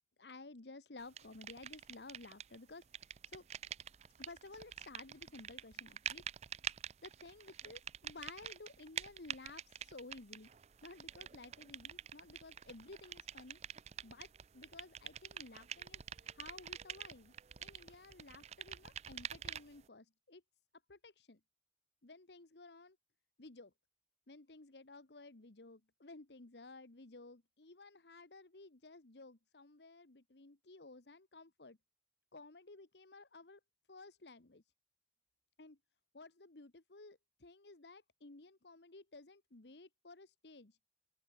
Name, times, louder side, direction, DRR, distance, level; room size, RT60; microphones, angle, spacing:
voice 1, 0.2-3.5 4.2-6.2 7.0-10.5 10.8-13.6 14.0-17.3 17.6-20.4 20.9-21.4 22.0-23.0 23.4-23.7 24.3-31.8 32.3-33.6 33.9-34.6 35.6-35.8 36.1-40.8, left 3 dB, 80° left, 1.4 m, -55 dB
sound 1, 1.2-2.6 2.8-19.8, right 9 dB, 35° right, 0.4 m, -47 dB
open air
head